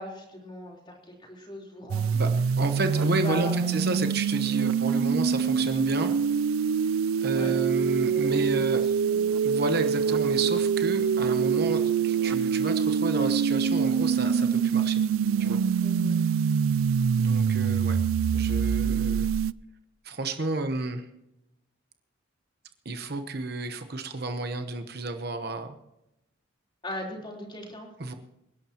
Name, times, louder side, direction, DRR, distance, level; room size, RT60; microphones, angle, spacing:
voice 1, 0.0-2.1 3.0-3.8 7.3-9.2 15.8-16.2 26.8-27.9, left 1 dB, 25° left, -1 dB, 3.9 m, -39 dB
sound 1, 1.9-19.5, right 6 dB, 85° right, 0.4 m, -25 dB
voice 2, 2.6-6.1 7.2-8.8 9.4-15.0 15.4-15.6 17.2-18.0 18.3-19.3 20.0-21.1 22.8-25.8 28.0-28.1, right 2 dB, 50° right, 7 dB, 1.0 m, -31 dB
27.5 x 11.5 x 3.0 m, 0.88 s
head